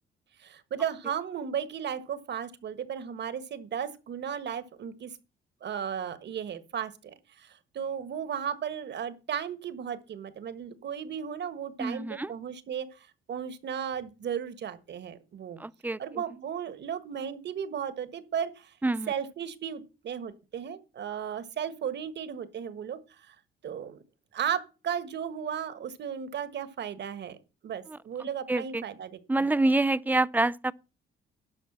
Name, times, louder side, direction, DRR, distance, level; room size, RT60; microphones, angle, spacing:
voice 1, 0.4-5.1 5.6-15.6 16.0-18.7 19.1-23.3 23.6-24.0 24.3-27.4 27.6-29.5, right 8 dB, 60° right, 1.5 m, -35 dB
voice 2, 11.8-12.3 15.6-16.0 18.8-19.1 27.9-28.8 29.3-30.7, right 2 dB, 10° right, 0.5 m, -27 dB
12.0 x 5.0 x 7.2 m
cardioid pair, 90°, 20 cm